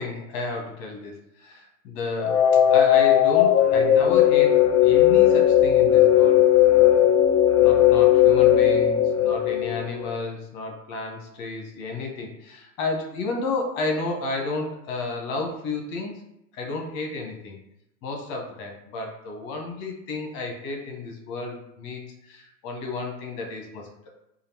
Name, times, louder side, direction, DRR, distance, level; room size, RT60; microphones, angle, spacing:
voice 1, 0.0-2.4 2.7-6.4 6.7-7.1 7.6-16.2 16.5-17.6 18.0-24.1, left 3 dB, 35° left, 2 dB, 1.0 m, -32 dB
sound 1, 2.2-10.2, left 11 dB, 60° left, 0.6 m, -17 dB
5.0 x 2.5 x 2.8 m, 0.83 s
hypercardioid pair, 110°, 49 cm